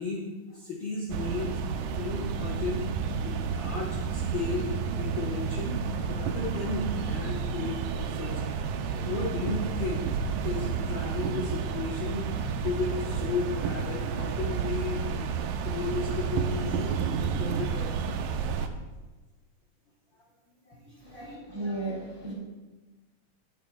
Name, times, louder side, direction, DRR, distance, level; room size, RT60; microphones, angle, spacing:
voice 1, 0.0-2.9 3.2-4.7 5.0-5.8 6.1-8.4 8.9-10.1 10.4-12.3 12.6-15.3 15.6-17.0 17.4-18.2 20.6-21.1, left 4 dB, 70° left, -4 dB, 1.1 m, -34 dB
sound 1, 1.1-18.7, right 6 dB, 80° right, 2.1 m, -31 dB
voice 2, 21.0-22.3, right 2 dB, 10° right, -6 dB, 2.4 m, -35 dB
17.5 x 7.1 x 2.3 m, 1.2 s
omnidirectional pair, 3.8 m